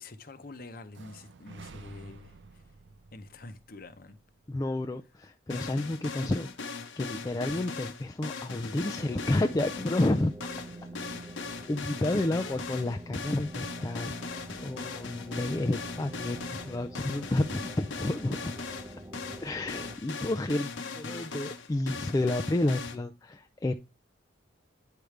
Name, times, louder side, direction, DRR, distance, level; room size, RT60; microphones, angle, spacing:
voice 1, 0.0-2.7 3.1-4.2 6.2-6.3, left 3 dB, 45° left, 0.8 m, -46 dB
sound 1, 0.9-4.8, right 4 dB, 70° right, 0.5 m, -52 dB
voice 2, 4.5-6.5 7.0-10.5 11.7-18.5 19.4-23.7, left 2 dB, 20° left, 0.3 m, -30 dB
sound 2, 5.5-22.9, left 4 dB, 75° left, 0.9 m, -39 dB
sound 3, 9.0-20.0, right 1 dB, 15° right, 0.7 m, -46 dB
9.2 x 5.0 x 3.2 m
head